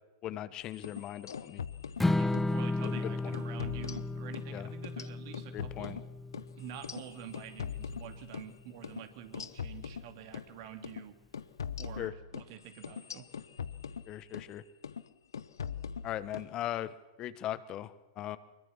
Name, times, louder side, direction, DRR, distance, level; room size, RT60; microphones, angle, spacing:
voice 1, 0.2-1.6 2.8-3.4 4.5-4.7 5.5-6.0 12.0-12.1 14.1-14.6 16.0-18.4, left 12 dB, 35° left, 14 dB, 1.2 m, -39 dB
sound 1, 0.7-2.5 2.8-3.0 3.3-4.5 4.8-8.5 8.8-9.0 9.3-10.5 10.8-11.0 11.3-14.5 14.8-15.1 15.3-16.5, left 7 dB, 75° left, 1.0 m, -41 dB
Strum, 2.0-8.3, left 2 dB, 5° left, 1.1 m, -34 dB
voice 2, 2.1-6.0 6.6-11.2 11.8-13.3, right 10 dB, 50° right, 8 dB, 2.9 m, -48 dB
24.5 x 22.0 x 7.4 m, 1.1 s
figure-of-eight pair, 95°, 2 cm